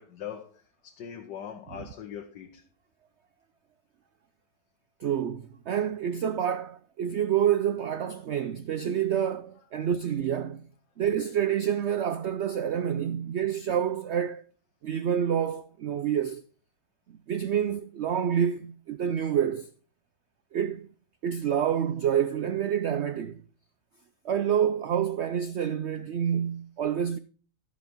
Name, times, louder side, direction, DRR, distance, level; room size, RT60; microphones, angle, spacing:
voice 1, 0.0-2.6, left 8 dB, 80° left, 1.5 m, -41 dB
voice 2, 5.0-10.7 11.0-14.4 14.8-16.4 17.1-19.7 20.5-20.9 21.2-23.4 24.2-27.2, right 9 dB, 80° right, 0.6 m, -28 dB
11.0 x 8.2 x 4.4 m
omnidirectional pair, 1.8 m